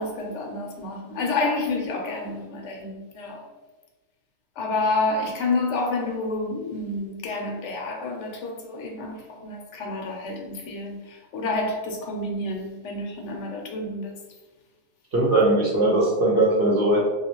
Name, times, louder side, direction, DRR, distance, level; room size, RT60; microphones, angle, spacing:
voice 1, 0.0-3.5 4.6-14.3, left 2 dB, 70° left, 0.9 m, -29 dB
voice 2, 15.1-17.0, right 2 dB, 50° right, 0.8 m, -20 dB
3.0 x 2.4 x 3.0 m
omnidirectional pair, 1.3 m